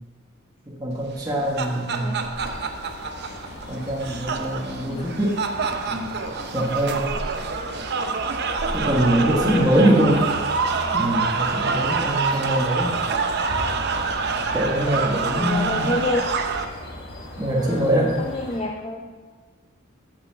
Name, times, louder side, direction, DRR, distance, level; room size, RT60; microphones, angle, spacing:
voice 1, 0.7-2.2 3.7-5.5 5.9-6.1 6.5-7.0 8.7-10.2 10.9-12.9 14.5-15.9 17.4-18.1, right 1 dB, 20° right, -3 dB, 1.3 m, -23 dB
sound 1, 1.2-16.6, right 4 dB, 55° right, 0.7 m, -26 dB
voice 2, 1.3-2.3 4.8-5.1 9.5-10.4 14.9-16.2 17.6-19.2, left 1 dB, 25° left, 1 dB, 0.6 m, -30 dB
sound 2, 2.3-18.6, left 1 dB, 45° left, 1.8 m, -38 dB
8.6 x 6.8 x 5.7 m, 1.4 s
head